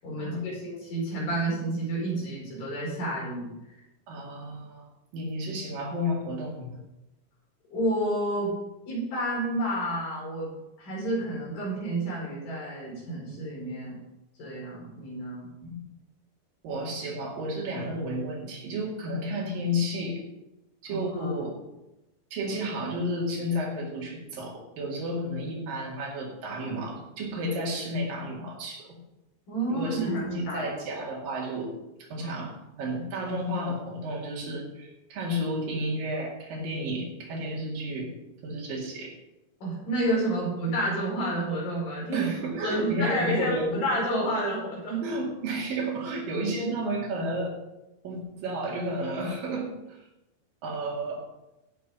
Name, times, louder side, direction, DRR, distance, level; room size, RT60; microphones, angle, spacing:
voice 1, 0.0-3.5 7.7-8.5 8.9-10.5 10.8-14.0 14.4-15.5 20.9-21.4 29.5-30.7 39.6-42.3 42.6-45.0, right 1 dB, 85° left, -6 dB, 7.1 m, -30 dB
voice 2, 4.1-4.9 5.1-6.8 15.6-15.8 16.6-20.2 20.8-21.5 22.3-28.9 29.7-31.7 32.1-38.1 38.4-39.1 42.1-43.7 45.0-47.6 48.0-50.0 50.6-51.2, equal, 90° right, -3 dB, 4.2 m, -32 dB
16.0 x 6.0 x 5.6 m, 0.93 s
omnidirectional pair, 3.8 m